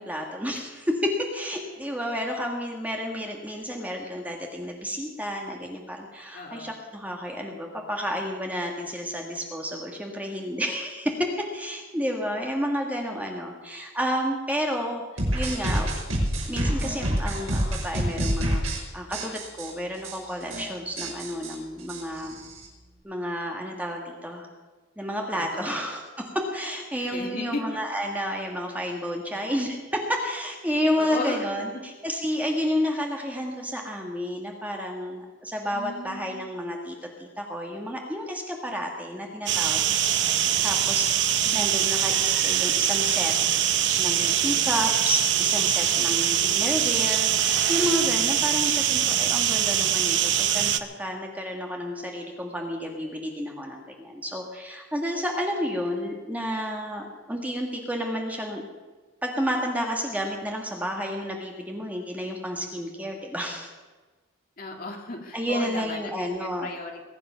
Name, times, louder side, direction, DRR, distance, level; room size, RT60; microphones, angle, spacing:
voice 1, 0.0-15.0 15.3-15.9 16.5-18.6 18.9-22.4 23.0-24.5 25.0-39.8 40.6-43.3 43.7-58.6 59.2-63.7 65.3-66.7, equal, 10° right, 1 dB, 1.6 m, -31 dB
voice 2, 6.3-6.8 25.3-25.8 27.1-27.6 30.9-31.8 35.7-36.5 41.4-41.8 64.6-67.0, left 2 dB, 45° left, 1 dB, 2.2 m, -35 dB
sound 1, 15.2-18.8 19.1-19.7 20.0-20.2 20.4-20.6 21.0-22.7, right 1 dB, 80° right, 6.0 m, -27 dB
sound 2, 39.5-50.8, right 10 dB, 60° right, 0.8 m, -23 dB
21.0 x 9.9 x 5.7 m, 1.3 s
head